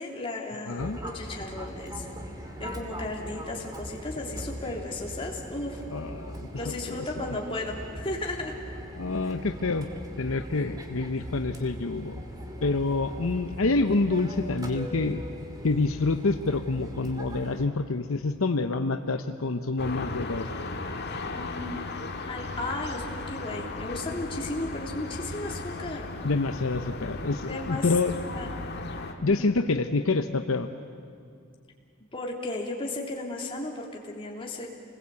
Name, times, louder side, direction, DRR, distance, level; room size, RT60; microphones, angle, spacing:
voice 1, 0.0-2.0 2.6-5.8 6.5-8.6 9.2-9.3 21.3-21.8 22.3-26.1 27.5-28.6 29.2-29.4 32.1-34.7, left 2 dB, 25° left, -1 dB, 3.2 m, -35 dB
voice 2, 0.7-1.0 5.9-7.0 9.0-9.9 10.2-12.2 12.6-15.2 15.6-20.5 26.2-28.2 29.2-30.7, left 3 dB, 70° left, 7 dB, 0.8 m, -27 dB
Fixed-wing aircraft airplane, 0.8-17.7, equal, 20° right, 2.2 m, -40 dB
sound 1, 19.8-29.1, left 2 dB, 50° left, 1.9 m, -36 dB
29.0 x 20.5 x 8.3 m, 2.3 s
head